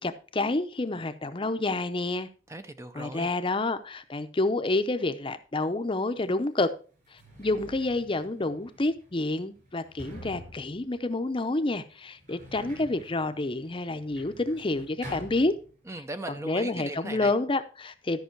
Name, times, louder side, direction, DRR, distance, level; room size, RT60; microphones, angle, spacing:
voice 1, 0.0-2.3 2.9-6.7 7.1-15.6 16.4-18.2, left 2 dB, 30° left, 0.6 m, -29 dB
voice 2, 2.5-3.3 15.9-17.3, right 1 dB, 15° right, 0.5 m, -38 dB
Sliding door, 6.2-6.3 6.9-16.1 16.4-17.2, equal, 45° right, 5.7 m, -48 dB
13.0 x 5.5 x 4.5 m
head